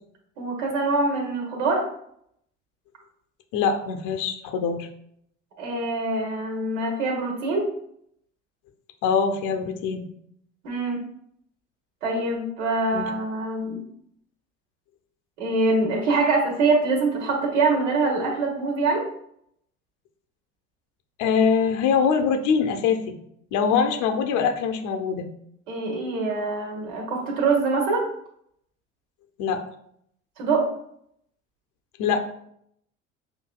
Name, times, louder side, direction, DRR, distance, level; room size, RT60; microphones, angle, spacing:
voice 1, 0.4-1.8 5.6-7.7 10.6-11.0 12.0-13.8 15.4-19.0 25.7-28.1 30.4-30.6, right 3 dB, 70° right, 0 dB, 1.5 m, -24 dB
voice 2, 3.5-4.9 9.0-10.0 12.9-13.1 21.2-23.1 23.5-25.3 29.4-29.6 32.0-32.2, left 6 dB, 55° left, 5 dB, 0.7 m, -23 dB
6.4 x 2.7 x 2.3 m, 0.70 s
figure-of-eight pair, 60°, 37 cm